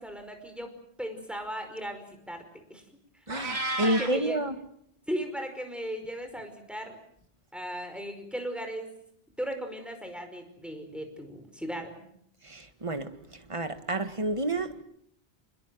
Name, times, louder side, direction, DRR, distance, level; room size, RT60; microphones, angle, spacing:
voice 1, 0.0-2.8 3.1-3.3 3.8-4.4 5.1-7.0 7.5-8.9 9.4-12.1, equal, ahead, 5.1 m, -37 dB
voice 2, 3.3-4.5 12.4-14.8, right 1 dB, 30° right, 1.8 m, -30 dB
Meow, 3.3-4.2, right 2 dB, 75° right, 3.1 m, -32 dB
26.0 x 22.0 x 7.7 m
omnidirectional pair, 1.1 m